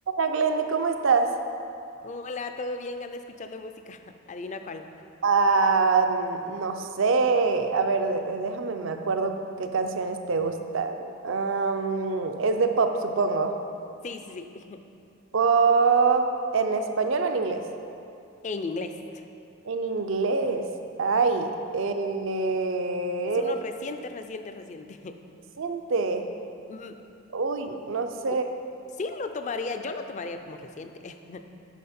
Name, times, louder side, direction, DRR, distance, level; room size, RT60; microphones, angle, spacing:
voice 1, 0.2-1.3 5.2-10.9 11.2-13.6 15.3-16.3 16.5-17.6 19.6-20.6 21.0-23.5 25.6-26.3 27.3-28.4, right 4 dB, 65° right, 6 dB, 0.5 m, -24 dB
voice 2, 2.0-4.9 14.0-14.8 18.4-19.2 23.4-25.2 26.7-27.0 28.3-28.4 29.0-31.4, left 3 dB, 35° left, 8 dB, 0.4 m, -36 dB
9.2 x 5.8 x 4.3 m, 2.6 s
head